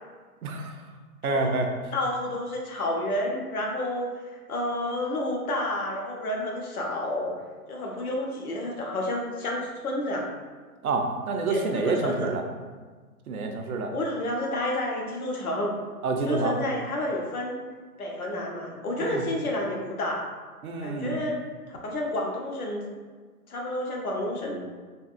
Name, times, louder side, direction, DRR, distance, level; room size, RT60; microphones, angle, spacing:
voice 1, 0.4-0.8 1.2-1.7 10.8-12.4 13.3-13.9 16.0-16.6 19.0-19.2 20.6-21.2, right 3 dB, 65° right, 4 dB, 0.5 m, -28 dB
voice 2, 1.9-7.3 7.7-10.2 11.5-11.6 11.8-12.3 13.9-15.8 16.2-17.6 18.0-20.2 20.8-21.4 21.7-22.9 23.5-24.6, left 1 dB, 65° left, -1 dB, 0.9 m, -30 dB
3.4 x 2.3 x 2.5 m, 1.4 s
figure-of-eight pair, 140°, 47 cm